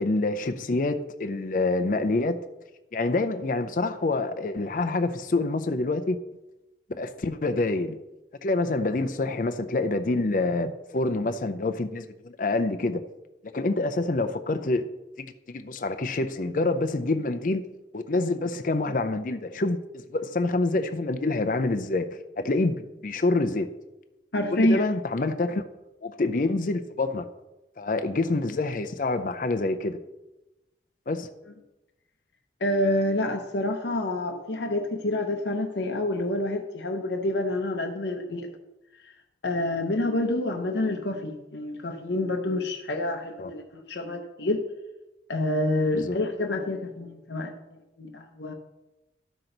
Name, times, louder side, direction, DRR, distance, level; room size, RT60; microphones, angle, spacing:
voice 1, 0.0-2.4 2.9-6.2 7.0-8.0 8.4-13.0 13.5-14.8 15.2-17.6 17.9-23.7 24.5-25.6 26.0-27.3 27.8-30.0 31.1-31.3 43.4-43.5 46.1-46.2, left 2 dB, 45° left, 0.5 m, -27 dB
voice 2, 24.3-24.8 32.6-38.5 39.4-44.6 45.3-47.6 48.0-48.5, left 1 dB, 75° left, 0.8 m, -27 dB
13.0 x 6.0 x 3.9 m
head